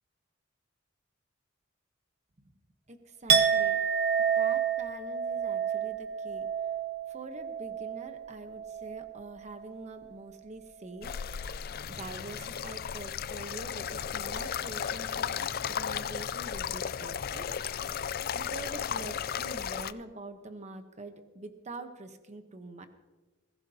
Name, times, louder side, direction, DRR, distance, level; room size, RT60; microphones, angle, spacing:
voice 1, 2.9-3.8 4.3-6.5 7.1-11.4 11.9-17.9 18.3-22.9, right 2 dB, 35° right, 7 dB, 1.0 m, -45 dB
Chink clink, 3.3-9.2 9.5-9.9, right 7 dB, 55° right, 0.9 m, -29 dB
sound 1, 11.0-19.9, left 8 dB, 50° left, 0.4 m, -35 dB
21.5 x 15.5 x 2.9 m, 1.2 s
head